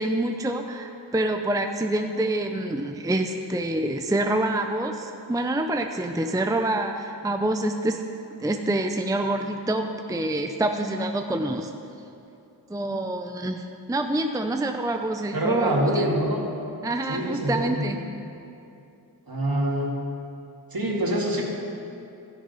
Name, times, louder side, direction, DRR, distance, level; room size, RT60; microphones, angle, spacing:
voice 1, 0.0-8.0 8.4-11.7 12.7-16.0 16.8-18.0, right 1 dB, 10° right, 5 dB, 0.6 m, -26 dB
voice 2, 15.3-16.4 17.1-17.9 19.3-19.9 20.7-21.4, right 1 dB, 55° right, -2 dB, 2.3 m, -25 dB
13.0 x 9.4 x 5.6 m, 2.7 s
wide cardioid pair, 55°, 43 cm